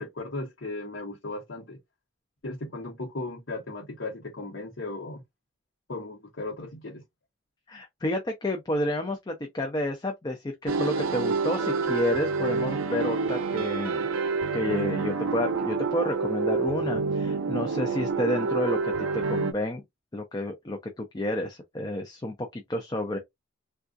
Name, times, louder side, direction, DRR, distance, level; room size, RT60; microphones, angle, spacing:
voice 1, 0.0-1.8 2.4-5.2 5.9-7.0, left 2 dB, 65° left, 0.9 m, -36 dB
voice 2, 7.7-14.0 14.5-19.8 20.1-23.2, left 1 dB, 20° left, 0.4 m, -30 dB
sound 1, 10.7-19.5, right 4 dB, 85° right, 0.5 m, -28 dB
3.5 x 2.3 x 2.5 m
head